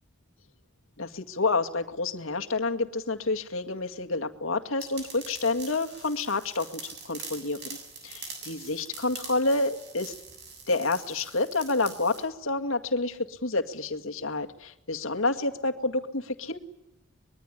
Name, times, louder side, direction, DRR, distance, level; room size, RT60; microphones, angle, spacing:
voice 1, 1.0-7.6 8.0-10.1 10.7-16.6, left 3 dB, 80° left, 5 dB, 2.1 m, -29 dB
sound 1, 4.8-12.2, right 4 dB, 55° right, 7.7 m, -44 dB
24.5 x 22.0 x 9.9 m, 0.90 s
head